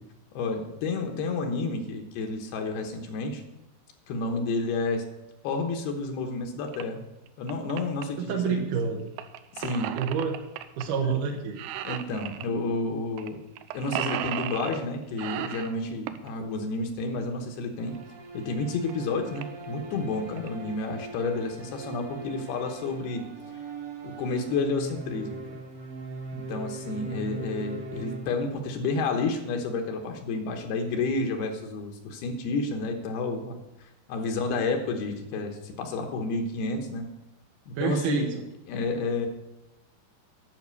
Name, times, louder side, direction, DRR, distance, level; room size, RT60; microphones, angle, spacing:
voice 1, 0.3-3.4 4.1-5.0 5.4-7.0 7.4-8.6 9.5-10.0 11.0-11.1 11.8-13.4 13.7-18.0 18.3-23.2 24.0-25.4 26.3-37.1 37.7-38.4 38.7-39.3, left 3 dB, 75° left, 3 dB, 2.9 m, -30 dB
sound 1, 6.7-6.8 7.3-8.0 9.2-10.8 11.2-11.3 11.6-12.5 13.2-13.3 13.6-14.8 15.2-16.3 18.0-18.1 18.6-18.7 18.9-19.0 19.4-19.7 20.1-20.5, right 12 dB, 85° right, 2.8 m, -35 dB
voice 2, 8.2-9.1 9.9-10.4 10.8-11.6 37.8-38.3, right 6 dB, 70° right, 1 dB, 2.2 m, -28 dB
sound 2, 17.8-28.9, right 4 dB, 50° right, 2.0 m, -41 dB
10.5 x 6.0 x 8.1 m, 0.93 s
omnidirectional pair, 4.9 m